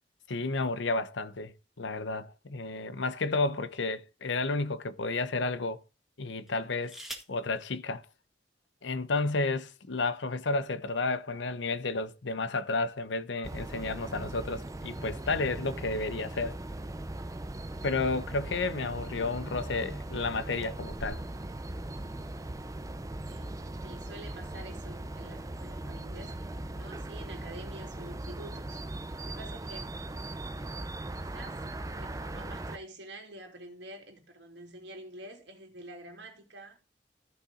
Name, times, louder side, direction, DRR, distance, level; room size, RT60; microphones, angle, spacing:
voice 1, 0.3-5.8 6.2-6.9 7.3-8.0 8.8-16.6 17.8-21.2, left 3 dB, 80° left, 0.8 m, -31 dB
sound 1, 6.5-7.5 8.6-8.7 9.0-9.4, right 1 dB, ahead, 1.8 m, -47 dB
sound 2, 13.4-32.8, right 1 dB, 20° right, 0.5 m, -39 dB
voice 2, 23.2-28.8 29.1-29.9 31.1-36.8, right 1 dB, 70° right, 2.9 m, -48 dB
14.0 x 5.8 x 3.8 m
head